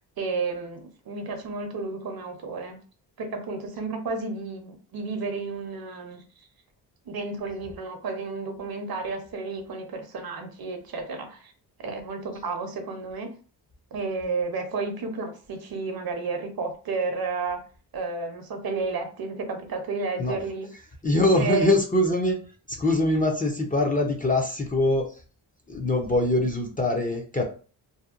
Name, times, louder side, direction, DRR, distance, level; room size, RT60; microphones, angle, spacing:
voice 1, 0.0-2.8 3.2-6.5 7.1-11.5 11.8-13.3 13.9-17.6 17.9-20.7 21.3-21.8, right 4 dB, 55° right, 5 dB, 0.7 m, -32 dB
voice 2, 21.0-22.4 22.8-25.0 25.7-27.5, left 2 dB, 20° left, 1 dB, 0.5 m, -23 dB
2.7 x 2.1 x 2.4 m, 0.37 s
cardioid pair, 80°, 43 cm